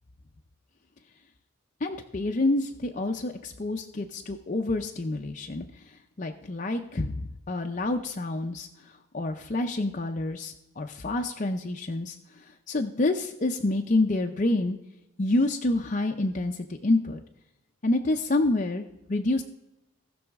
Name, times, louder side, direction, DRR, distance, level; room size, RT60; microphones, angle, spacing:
voice 1, 1.8-14.8 15.2-17.2 17.8-19.4, left 2 dB, 35° left, 3 dB, 0.6 m, -28 dB
17.5 x 6.2 x 3.5 m, 0.94 s
head